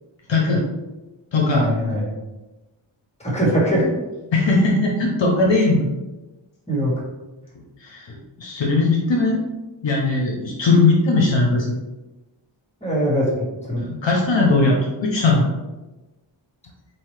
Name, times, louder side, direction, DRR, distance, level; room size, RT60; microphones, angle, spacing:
voice 1, 0.3-0.7 1.3-1.7 4.3-5.9 7.8-9.4 9.8-11.8 13.8-15.5, left 3 dB, 65° left, 0 dB, 0.7 m, -19 dB
voice 2, 1.5-2.1 3.2-3.9 6.7-6.9 12.8-13.3 13.6-13.8, equal, 15° left, -4 dB, 1.5 m, -21 dB
4.0 x 2.8 x 3.2 m, 1.1 s
wide cardioid pair, 50°, 49 cm